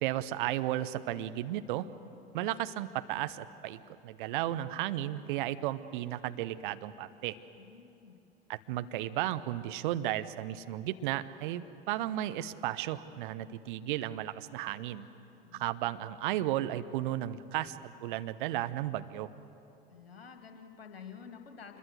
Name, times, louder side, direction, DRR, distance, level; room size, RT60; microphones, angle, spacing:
voice 1, 0.0-1.9 2.3-7.4 8.5-15.1 15.5-19.3, right 13 dB, 55° right, 11 dB, 1.0 m, -34 dB
voice 2, 7.6-8.2 15.4-15.6 19.9-21.8, left 6 dB, 75° left, 5 dB, 2.3 m, -50 dB
26.0 x 22.0 x 8.0 m, 2.8 s
figure-of-eight pair, 75°, 30 cm